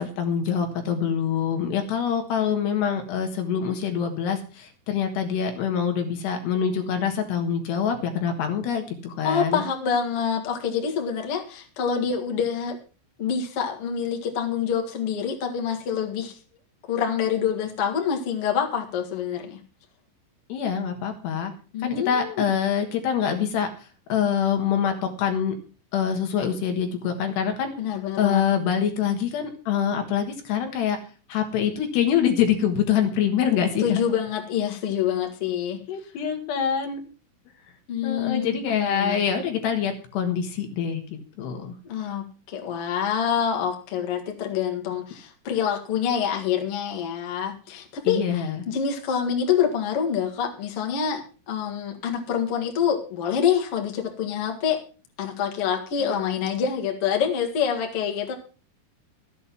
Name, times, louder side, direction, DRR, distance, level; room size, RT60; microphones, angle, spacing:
voice 1, 0.0-9.6 20.5-21.5 21.8-25.5 25.9-27.7 28.2-31.0 31.3-34.0 35.9-37.0 38.0-41.0 41.4-41.7 48.0-48.6 56.1-56.2, left 8 dB, 65° left, 5 dB, 3.4 m, -25 dB
voice 2, 9.2-12.8 13.2-16.4 16.9-19.6 21.7-22.5 27.8-28.4 33.8-35.8 37.9-39.2 41.9-51.2 51.5-54.8 55.2-58.3, left 7 dB, 50° left, 2 dB, 1.7 m, -26 dB
13.0 x 8.5 x 5.9 m, 0.36 s
omnidirectional pair, 5.7 m